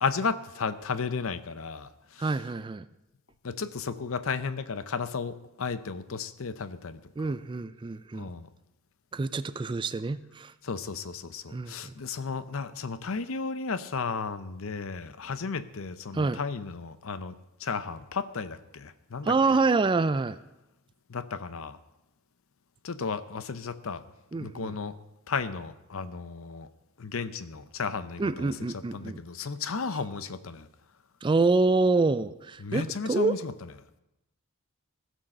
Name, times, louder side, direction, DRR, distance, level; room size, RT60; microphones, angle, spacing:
voice 1, 0.0-2.3 3.4-7.3 8.1-8.5 10.6-19.3 21.1-21.8 22.8-24.0 24.4-25.0 25.3-26.7 27.0-30.7 32.6-33.7, left 5 dB, 65° left, 14 dB, 0.7 m, -34 dB
voice 2, 2.2-2.9 7.2-8.3 9.1-10.5 11.5-11.9 16.1-16.4 19.2-20.4 24.3-24.7 28.2-29.2 31.2-33.4, right 3 dB, 20° right, 14 dB, 0.3 m, -26 dB
16.0 x 6.3 x 6.6 m, 0.92 s
head